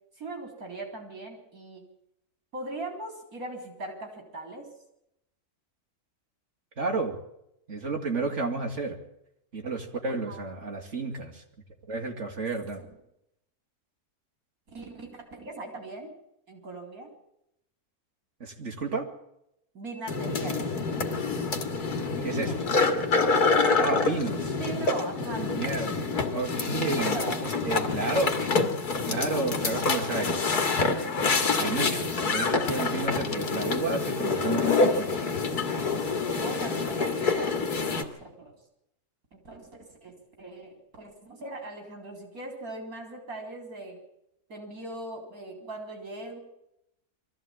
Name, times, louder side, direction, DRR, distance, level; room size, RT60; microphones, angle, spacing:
voice 1, 0.2-1.9 2.5-4.7 10.3-10.5 14.7-16.1 16.5-17.1 19.7-20.6 22.2-22.6 23.5-24.1 24.5-25.8 26.6-27.4 27.8-28.2 31.0-31.6 36.3-38.5 39.3-44.0 44.5-46.4, right 2 dB, 70° right, 3 dB, 4.5 m, -40 dB
voice 2, 6.8-7.2 7.7-9.0 9.5-11.4 11.9-12.8 18.4-19.1 22.2-22.6 23.8-24.4 25.3-25.9 26.3-27.2 27.6-28.4 29.1-30.4 31.6-35.3, right 3 dB, 50° right, 2 dB, 3.1 m, -31 dB
sound 1, 20.1-38.0, left 4 dB, 85° left, 2.4 m, -27 dB
22.5 x 14.5 x 8.8 m, 0.82 s
omnidirectional pair, 1.6 m